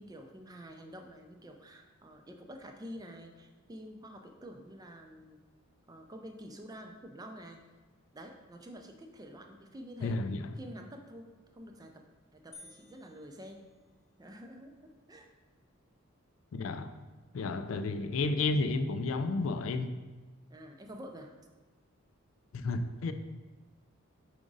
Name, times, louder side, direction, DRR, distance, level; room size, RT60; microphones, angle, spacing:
voice 1, 0.0-5.4 5.9-7.6 8.1-10.2 10.6-11.3 11.5-12.0 12.3-13.7 14.2-15.3 20.5-21.3, equal, 20° right, 4 dB, 0.4 m, -48 dB
voice 2, 10.0-10.5 16.5-16.9 17.3-19.9 22.5-23.1, left 3 dB, 70° left, 9 dB, 0.4 m, -31 dB
sound 1, 12.5-14.3, left 2 dB, 30° left, 0.7 m, -56 dB
5.0 x 4.8 x 3.9 m, 1.2 s
head